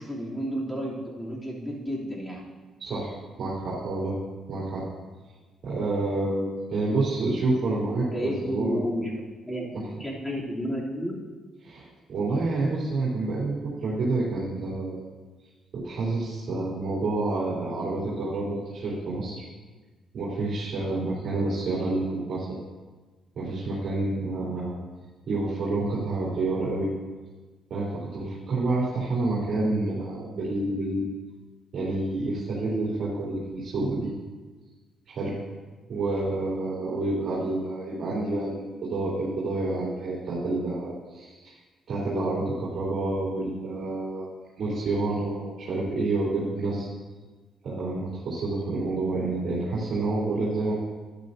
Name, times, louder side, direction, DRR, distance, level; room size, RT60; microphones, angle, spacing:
voice 1, 0.0-2.4 7.9-11.1, equal, 10° left, -5 dB, 3.1 m, -32 dB
voice 2, 2.8-3.1 3.4-4.1 4.5-4.8 5.6-8.9 11.6-15.1 15.7-19.4 20.1-22.6 23.3-24.7 25.3-26.9 27.7-31.1 31.7-34.1 35.1-35.4 35.9-41.5 41.9-44.3 44.6-46.9 47.6-50.7, right 2 dB, 60° right, -8 dB, 3.3 m, -28 dB
12.0 x 11.0 x 2.8 m, 1.3 s
cardioid pair, 90°, 0 cm